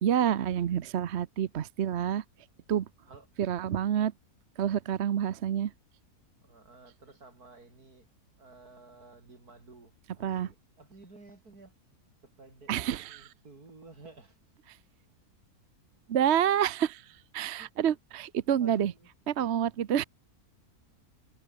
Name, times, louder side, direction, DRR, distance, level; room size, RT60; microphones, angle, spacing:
voice 1, 0.0-2.2 2.7-2.9 3.4-4.1 4.6-5.7 10.2-10.5 12.7-13.3 16.1-18.9 19.3-20.0, right 9 dB, 55° right, 0.9 m, -28 dB
voice 2, 6.4-8.1 8.4-11.7 12.4-12.7 13.0-14.4 17.6-17.7 18.5-19.1, right 3 dB, 80° right, 4.8 m, -53 dB
omnidirectional pair, 1.6 m